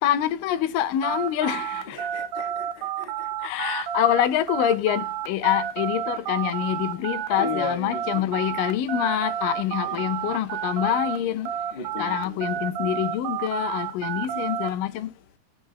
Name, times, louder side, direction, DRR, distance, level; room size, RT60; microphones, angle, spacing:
voice 1, 0.0-2.1 3.4-11.5 12.0-15.1, left 11 dB, 85° left, 2.4 m, -26 dB
sound 1, 1.0-11.2 11.5-14.7, right 10 dB, 75° right, 2.1 m, -30 dB
voice 2, 1.8-3.5 7.4-8.5 9.8-10.1 11.7-12.4 14.3-14.5, left 5 dB, 70° left, 0.5 m, -37 dB
19.0 x 7.5 x 2.2 m
omnidirectional pair, 3.8 m